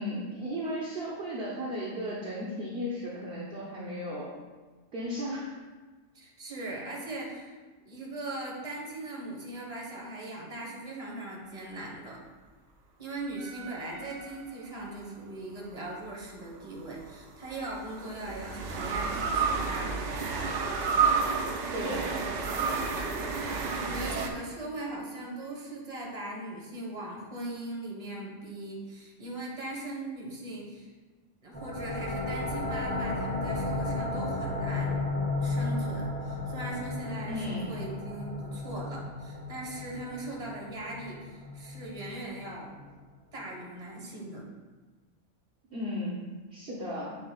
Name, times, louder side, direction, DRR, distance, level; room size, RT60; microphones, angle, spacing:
voice 1, 0.0-4.3 4.9-5.5 21.7-22.1 37.3-37.7 45.7-46.2 46.5-47.2, equal, 50° right, -6 dB, 1.2 m, -35 dB
voice 2, 6.1-7.5 7.8-12.2 13.0-20.1 23.3-30.9 31.4-35.1 35.4-42.9 43.3-44.5, right 2 dB, 30° right, -2 dB, 1.4 m, -39 dB
sound 1, 13.4-14.9 16.8-24.3, right 5 dB, 75° right, 1.0 m, -31 dB
sound 2, 31.5-42.9, left 2 dB, 10° left, 1.6 m, -34 dB
7.4 x 7.0 x 2.4 m, 1.3 s
omnidirectional pair, 1.3 m